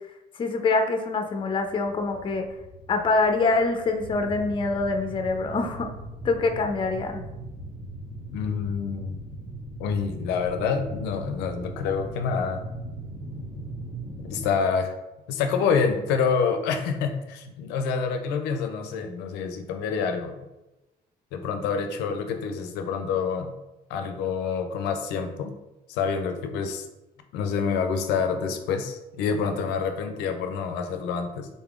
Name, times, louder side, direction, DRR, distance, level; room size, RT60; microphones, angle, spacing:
voice 1, 0.4-2.5 2.9-5.9 6.2-7.2, left 3 dB, 30° left, 5 dB, 0.5 m, -25 dB
sound 1, 1.3-14.5, right 1 dB, 30° right, 1.3 m, -39 dB
voice 2, 8.3-9.2 9.8-12.6 14.2-14.9 15.3-20.3 21.3-23.6 23.9-25.5 25.9-26.9 27.3-31.5, left 6 dB, 90° left, 6 dB, 0.4 m, -27 dB
4.0 x 3.5 x 2.4 m, 1.0 s
cardioid pair, 110°, 17 cm